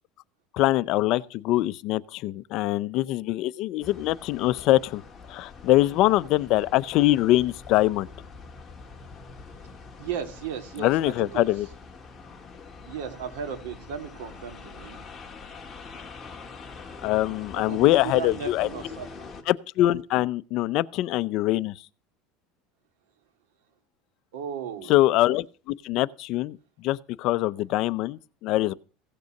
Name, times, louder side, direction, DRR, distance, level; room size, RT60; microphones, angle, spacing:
voice 1, 0.5-5.0 5.3-8.1 10.8-11.7 17.0-18.7 19.5-21.7 24.9-26.6 26.8-28.7, left 16 dB, 50° left, 0.5 m, -23 dB
sound 1, 3.8-19.4, left 4 dB, 15° left, 1.7 m, -44 dB
voice 2, 10.0-11.5 12.9-15.0 17.6-19.3 24.3-24.9, right 8 dB, 85° right, 2.3 m, -36 dB
16.5 x 6.8 x 6.5 m
supercardioid pair, 150°, 0 cm